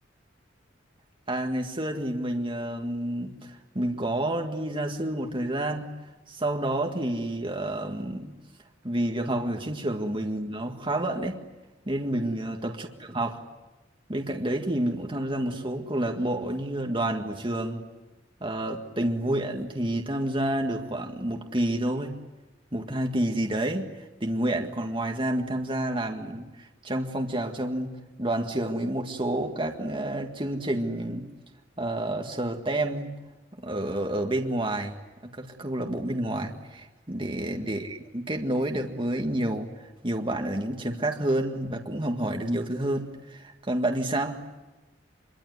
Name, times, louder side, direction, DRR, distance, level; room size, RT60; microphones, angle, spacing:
voice 1, 1.3-5.9 6.3-8.3 8.8-11.4 11.9-13.4 14.1-17.8 18.4-22.2 22.7-23.9 24.2-27.9 28.2-31.3 31.8-33.2 33.6-34.9 35.2-39.7 40.0-44.4, right 1 dB, 25° right, 3 dB, 1.9 m, -29 dB
25.5 x 23.5 x 9.6 m, 1.1 s
head